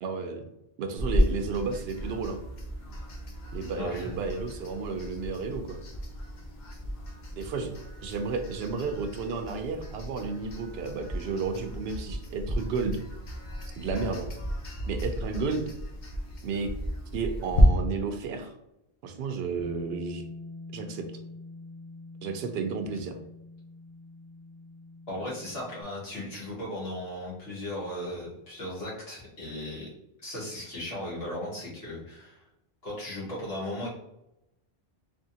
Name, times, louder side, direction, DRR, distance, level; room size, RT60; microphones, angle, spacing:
voice 1, 0.0-0.4 0.8-2.4 3.5-5.8 7.3-7.7 8.0-13.0 13.8-14.3 14.9-15.7 16.4-16.7 17.1-18.5 19.0-20.3 20.7-21.1 22.2-23.1, right 4 dB, 80° right, 6 dB, 0.8 m, -32 dB
sound 1, 1.0-17.6, equal, 50° left, 0.8 m, -35 dB
voice 2, 3.8-4.2 25.1-29.9 30.2-32.4 32.8-33.9, left 1 dB, 75° left, -7 dB, 1.9 m, -36 dB
Bass guitar, 19.6-25.8, left 2 dB, 20° left, 0.7 m, -44 dB
3.5 x 3.4 x 2.7 m, 0.85 s
omnidirectional pair, 1.0 m